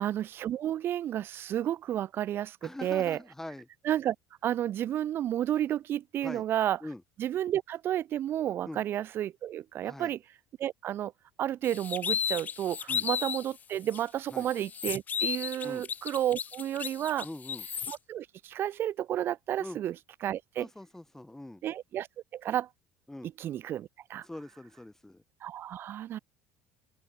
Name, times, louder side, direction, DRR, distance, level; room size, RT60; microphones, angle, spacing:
voice 1, 0.0-3.2 3.8-4.1 4.4-6.8 7.2-10.2 10.6-11.1 11.4-17.2 17.9-19.9 20.2-20.7 21.6-22.1 22.3-22.7 23.4-24.3 25.4-26.2, right 11 dB, 50° right, 1.1 m, -31 dB
voice 2, 2.6-3.7 6.2-6.4 6.8-7.0 8.6-8.8 9.8-10.2 12.9-13.1 14.3-14.5 15.6-15.9 17.2-17.7 19.6-19.8 20.6-21.6 23.1-23.3 24.2-25.2, left 1 dB, 10° left, 6.1 m, -43 dB
sound 1, 11.6-13.5 13.9-14.0 14.4-18.0, left 7 dB, 35° left, 0.7 m, -34 dB
open air
hypercardioid pair, 65°, 5 cm